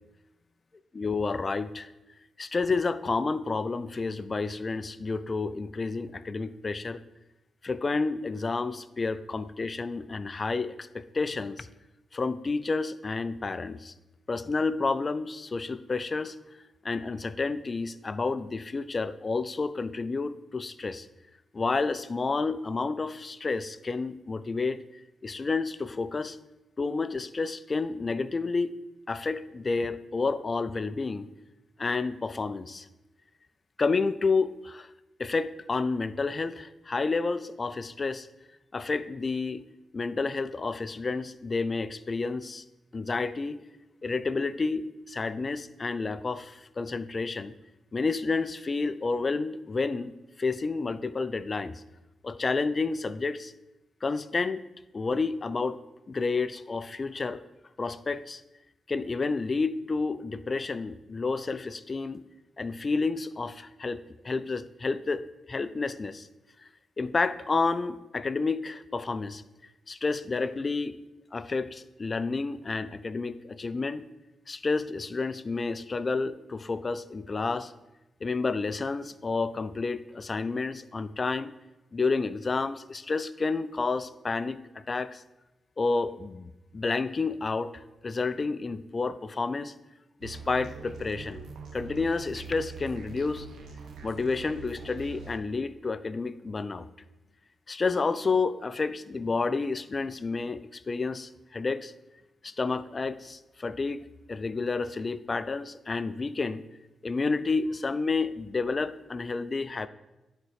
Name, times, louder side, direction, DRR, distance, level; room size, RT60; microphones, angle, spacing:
voice 1, 0.9-1.9 2.4-7.0 7.6-11.7 12.1-13.9 14.3-16.4 16.8-21.1 21.5-24.8 25.2-26.4 26.8-28.8 29.1-31.3 31.8-32.9 33.8-34.9 35.2-38.3 38.7-39.6 39.9-42.6 42.9-43.6 44.0-47.5 47.9-51.8 52.2-53.5 54.0-54.6 54.9-55.8 56.1-57.4 57.8-58.4 58.9-62.2 62.6-66.3 67.0-69.4 69.9-71.0 71.3-74.1 74.5-77.7 78.2-81.5 81.9-85.2 85.8-89.8 90.2-91.4 91.7-93.5 94.0-96.9 97.7-101.9 102.4-106.6 107.0-109.9, left 4 dB, 30° left, 14 dB, 0.3 m, -30 dB
sound 1, 90.2-95.4, right 5 dB, 70° right, 0.9 m, -43 dB
10.5 x 4.2 x 4.8 m, 1.0 s
wide cardioid pair, 125°, 0 cm